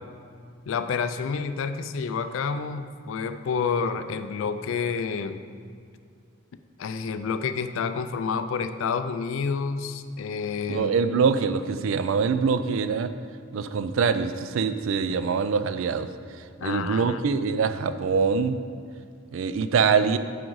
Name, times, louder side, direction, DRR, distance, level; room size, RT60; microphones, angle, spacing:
voice 1, 0.7-5.4 6.8-10.9 16.6-17.2, left 5 dB, 65° left, 10 dB, 0.3 m, -29 dB
voice 2, 10.7-13.1 13.5-16.1 16.6-18.6 19.3-20.2, right 5 dB, 65° right, 11 dB, 0.3 m, -24 dB
6.2 x 5.1 x 4.6 m, 2.2 s
head